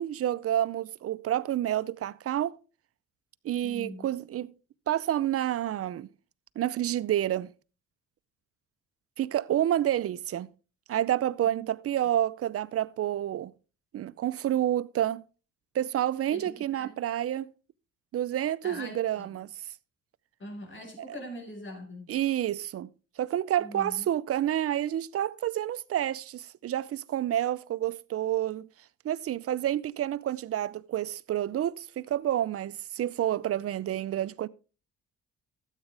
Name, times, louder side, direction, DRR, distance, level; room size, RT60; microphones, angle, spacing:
voice 1, 0.0-2.5 3.4-4.5 4.9-6.1 6.6-7.5 9.2-10.5 10.9-13.5 13.9-15.2 15.7-17.5 18.1-19.5 21.1-21.2 22.1-22.9 23.2-28.7 29.0-34.5, right 12 dB, 50° right, 0.5 m, -29 dB
voice 2, 3.6-4.1 11.4-11.6 16.3-16.9 18.6-19.3 20.4-22.1 23.6-24.1, left 1 dB, 40° left, 4.8 m, -42 dB
13.0 x 8.2 x 3.4 m
cardioid pair, 90°, 30 cm